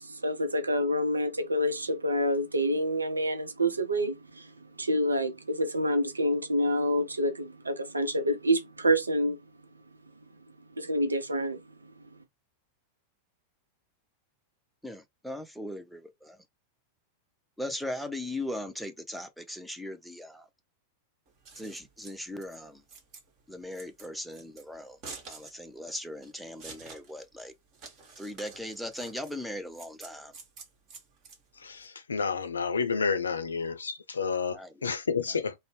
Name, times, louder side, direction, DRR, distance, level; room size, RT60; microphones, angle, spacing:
voice 1, 0.0-9.4 10.8-11.9, equal, 80° right, 0.5 m, -28 dB
voice 2, 14.8-16.4 17.6-20.5 21.6-22.8 23.5-25.0 25.3-27.5 28.2-30.3 34.5-34.9, left 1 dB, ahead, 0.5 m, -39 dB
Scissors, 21.3-31.9, right 4 dB, 35° right, 1.2 m, -49 dB
voice 3, 31.6-35.5, left 5 dB, 75° left, 0.4 m, -30 dB
2.6 x 2.0 x 3.1 m
figure-of-eight pair, 90°, 0 cm